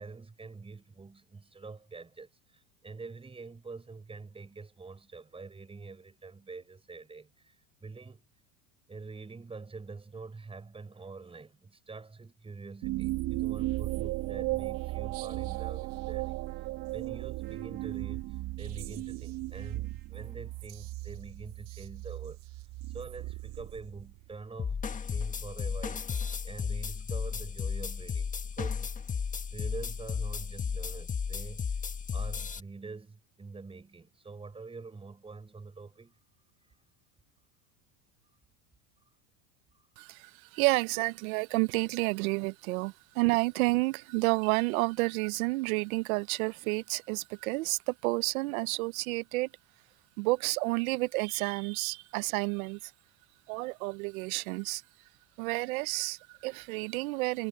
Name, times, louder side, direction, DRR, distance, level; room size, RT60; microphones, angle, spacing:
voice 1, 0.0-7.6 7.8-8.2 8.9-16.4 16.9-18.3 18.6-22.4 22.9-26.2 26.4-29.0 29.5-31.7 32.1-36.1, right 4 dB, 15° right, 5.7 m, -45 dB
sound 1, 12.8-24.4, right 19 dB, 55° right, 2.1 m, -36 dB
sound 2, 24.6-32.6, left 6 dB, 20° left, 1.5 m, -34 dB
voice 2, 40.0-49.5 50.2-52.8 53.5-54.8 55.4-57.5, right 24 dB, 90° right, 0.6 m, -30 dB
supercardioid pair, 135°, 41 cm